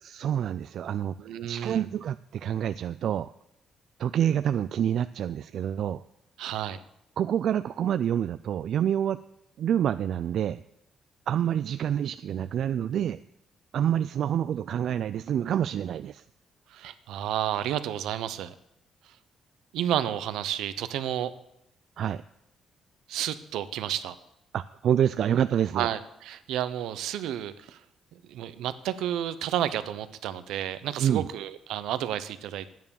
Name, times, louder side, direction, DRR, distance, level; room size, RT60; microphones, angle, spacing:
voice 1, 0.0-3.3 4.0-6.0 7.2-9.2 9.6-10.6 11.3-13.2 13.7-16.2 22.0-22.2 24.5-25.9 31.0-31.3, right 9 dB, 70° right, 13 dB, 0.3 m, -27 dB
voice 2, 1.2-1.9 6.4-6.8 16.7-18.5 19.0-19.2 19.7-21.3 23.1-24.1 25.7-27.8 28.1-32.7, right 11 dB, 85° right, 12 dB, 0.8 m, -31 dB
11.0 x 9.4 x 7.1 m, 0.81 s
cardioid pair, 90°, 0 cm